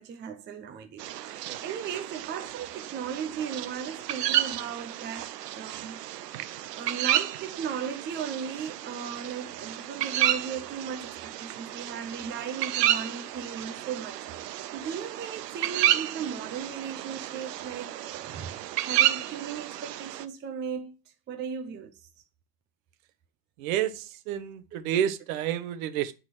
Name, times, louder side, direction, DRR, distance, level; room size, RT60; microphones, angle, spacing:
voice 1, 0.0-6.0 6.3-6.4 6.7-21.0 21.3-21.9, right 7 dB, 20° right, 0.9 m, -37 dB
sound 1, 1.0-20.3, right 12 dB, 90° right, 1.0 m, -31 dB
voice 2, 23.6-26.1, right 10 dB, 60° right, 1.3 m, -30 dB
10.5 x 4.3 x 6.0 m
supercardioid pair, 135°, 47 cm